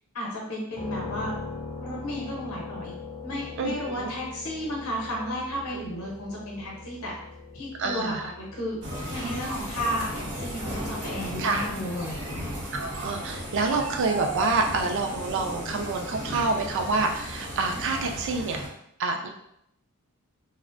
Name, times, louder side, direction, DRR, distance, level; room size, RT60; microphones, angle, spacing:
voice 1, 0.1-1.3 1.8-3.0 3.2-7.1 7.5-8.8 9.1-12.2, equal, 70° left, -3 dB, 0.7 m, -33 dB
sound 1, 0.7-14.5, left 3 dB, 30° left, 0.5 m, -42 dB
voice 2, 3.6-4.1 5.7-6.0 7.8-8.3 11.4-11.7 12.7-18.6 19.0-19.3, right 3 dB, 55° right, 4 dB, 0.3 m, -27 dB
sound 2, 8.8-18.7, equal, 85° right, 0.8 m, -35 dB
2.4 x 2.1 x 2.5 m, 0.76 s
head